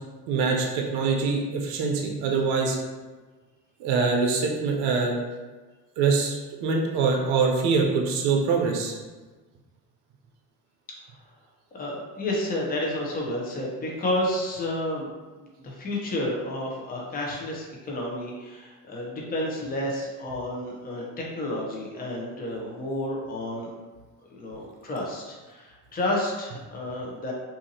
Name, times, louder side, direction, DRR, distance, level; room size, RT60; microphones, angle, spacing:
voice 1, 0.3-2.8 3.8-5.2 6.0-8.9, right 4 dB, 60° right, 1 dB, 0.7 m, -24 dB
voice 2, 11.7-15.1 15.4-23.7 24.3-27.3, left 1 dB, 20° left, -3 dB, 0.7 m, -31 dB
2.6 x 2.5 x 2.7 m, 1.3 s
hypercardioid pair, 75°, 46 cm